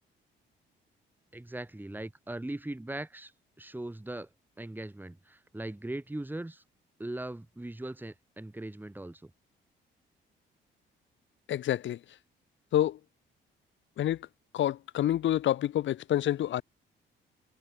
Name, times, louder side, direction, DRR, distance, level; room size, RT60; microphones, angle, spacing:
voice 1, 1.3-3.3 3.6-4.3 4.6-6.6 7.0-9.3, right 1 dB, 10° right, 4.0 m, -39 dB
voice 2, 11.5-12.0 12.7-13.0 14.0-14.2 14.5-16.6, left 12 dB, 70° left, 1.7 m, -27 dB
cardioid pair, 90°, 20 cm